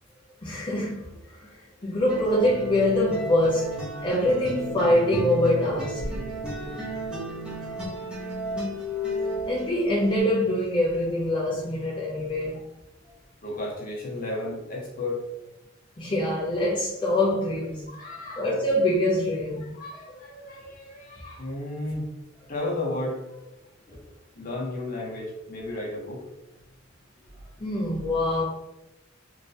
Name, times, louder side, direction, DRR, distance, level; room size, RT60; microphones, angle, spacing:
voice 1, 0.4-6.0 9.4-12.6 16.0-17.8 18.4-19.7 27.6-28.4, left 1 dB, 25° left, 0.5 m, -24 dB
sound 1, 2.1-10.2, right 1 dB, 5° right, 0.9 m, -33 dB
voice 2, 6.4-7.1 13.0-13.1 13.4-15.3 17.9-18.5 19.6-22.1 22.5-23.6 23.9-24.1 24.3-26.3, left 2 dB, 45° left, 0.9 m, -34 dB
3.1 x 2.9 x 2.7 m
head